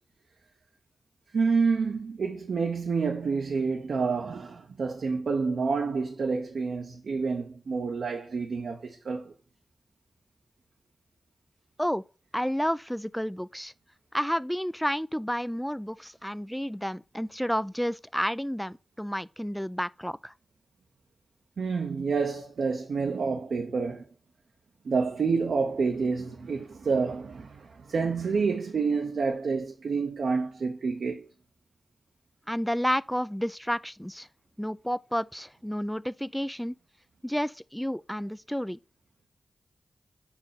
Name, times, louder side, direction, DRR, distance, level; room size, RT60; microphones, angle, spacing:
voice 1, 1.3-9.3 21.6-24.0 24.8-31.3, right 4 dB, 80° right, 0.8 m, -28 dB
voice 2, 12.3-13.7 14.1-20.3 32.5-34.3 34.6-36.8 37.2-38.8, equal, 5° left, 0.3 m, -31 dB
4.9 x 4.5 x 5.7 m
cardioid pair, 50°, 0 cm